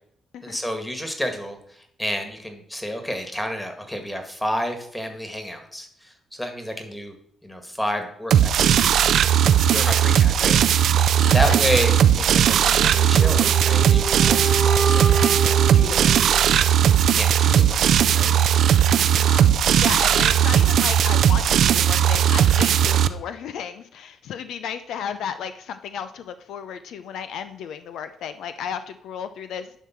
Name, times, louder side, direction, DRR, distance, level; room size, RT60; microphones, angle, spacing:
voice 1, 0.4-7.1 7.4-8.3 8.6-9.1 9.7-10.6 10.9-12.0 12.3-18.3, equal, 5° left, 5 dB, 1.8 m, -30 dB
sound 1, 8.3-23.1, right 9 dB, 70° right, 0.4 m, -18 dB
sound 2, 12.9-16.9, right 4 dB, 40° right, 1.2 m, -28 dB
voice 2, 19.0-29.7, left 8 dB, 75° left, 10 dB, 0.6 m, -34 dB
11.0 x 3.7 x 5.8 m, 0.69 s
cardioid pair, 90°, 0 cm